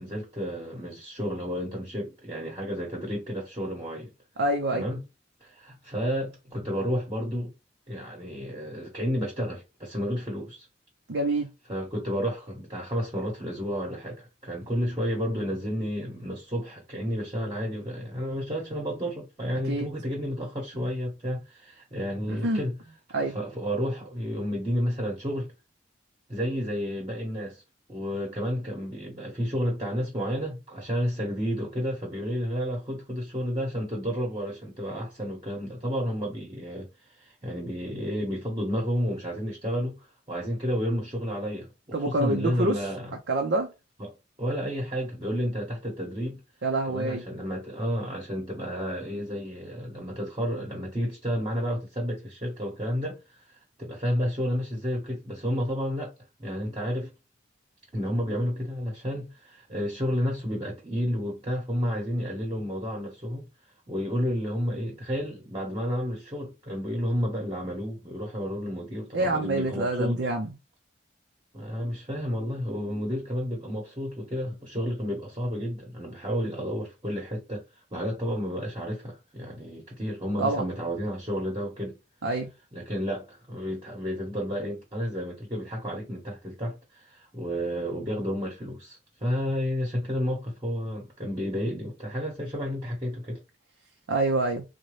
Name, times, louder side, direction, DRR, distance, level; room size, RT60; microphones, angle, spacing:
voice 1, 0.0-4.1 4.7-5.0 5.4-7.5 7.9-10.7 11.7-22.7 23.3-25.5 26.3-27.6 27.9-36.9 37.2-43.1 44.0-44.1 44.4-46.4 46.9-53.2 53.8-56.1 56.4-57.1 57.9-63.5 63.9-70.2 71.5-77.6 77.9-82.0 82.7-93.4, equal, 25° right, 1.0 m, -31 dB
voice 2, 4.4-4.9 11.1-11.5 19.7-19.9 22.3-22.6 23.1-23.3 41.9-42.9 43.3-43.7 46.6-47.2 69.1-70.5 80.4-80.6 82.2-82.5 94.1-94.6, right 2 dB, 80° right, 0.6 m, -26 dB
3.9 x 2.2 x 3.1 m
head